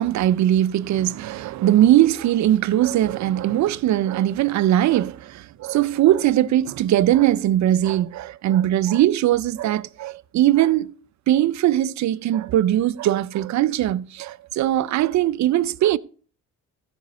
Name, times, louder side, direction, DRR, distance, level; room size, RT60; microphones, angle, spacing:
voice 1, 0.0-10.9 11.3-16.0, right 13 dB, 70° right, 0.6 m, -20 dB
15.0 x 5.2 x 6.5 m
cardioid pair, 90°, 30 cm